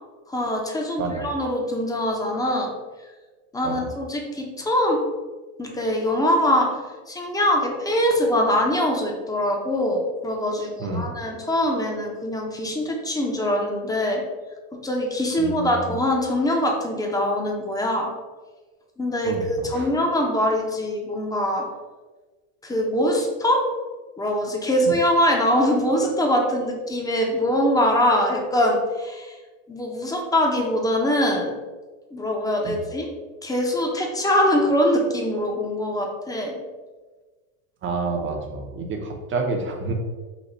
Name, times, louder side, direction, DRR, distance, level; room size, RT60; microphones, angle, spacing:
voice 1, 0.3-2.7 3.5-5.0 5.6-6.8 7.1-14.2 14.8-18.1 19.0-21.7 22.6-23.6 24.2-29.4 29.7-31.5 32.1-33.1 33.4-36.5, equal, 10° left, 0 dB, 0.8 m, -23 dB
voice 2, 1.0-1.3 3.6-3.9 10.8-11.1 15.4-16.0 19.2-19.9 24.9-25.0 32.6-32.8 37.8-39.9, right 3 dB, 30° right, 2 dB, 0.9 m, -29 dB
4.1 x 2.6 x 4.4 m, 1.3 s
supercardioid pair, 100°, 42 cm